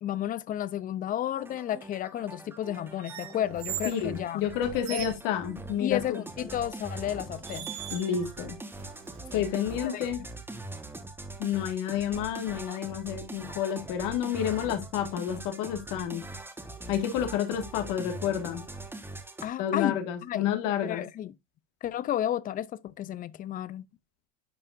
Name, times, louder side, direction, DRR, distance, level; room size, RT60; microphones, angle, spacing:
voice 1, 0.0-4.4 4.9-5.1 5.8-7.7 9.8-10.0 19.4-20.5 20.8-21.4 21.8-23.8, left 11 dB, 25° left, 0.4 m, -32 dB
sound 1, 1.4-19.5, right 2 dB, 5° right, 1.3 m, -42 dB
sound 2, 3.0-4.0 4.6-5.2 6.6-6.8 7.4-8.3 8.7-9.6, right 13 dB, 80° right, 2.0 m, -40 dB
voice 2, 3.9-6.2 7.9-8.6 9.3-10.2 11.4-16.2 16.9-18.6 19.6-21.0, left 9 dB, 55° left, 1.9 m, -30 dB
11.0 x 5.3 x 2.5 m
supercardioid pair, 125°, 38 cm